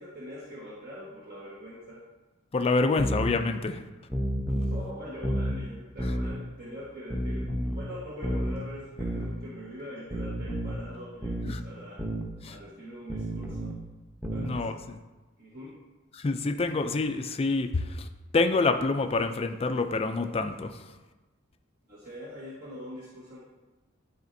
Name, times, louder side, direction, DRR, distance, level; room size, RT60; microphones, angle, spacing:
voice 1, 0.0-2.0 4.5-12.0 12.4-13.7 14.3-14.8 15.4-15.8 21.9-23.4, equal, 50° right, -7 dB, 1.3 m, -43 dB
voice 2, 2.5-3.8 11.5-11.6 12.4-12.6 14.4-15.0 16.1-18.1 18.3-20.9, left 3 dB, 30° left, 7 dB, 0.4 m, -27 dB
sound 1, 3.0-3.3 4.1-4.8 5.2-5.6 6.0-6.3 7.1-7.8 8.2-8.5 9.0-9.3 10.1-10.8 11.2-11.6 12.0-12.3 13.1-13.8 14.2-14.6, equal, 5° right, 0.8 m, -30 dB
11.0 x 4.2 x 2.7 m, 1.1 s
head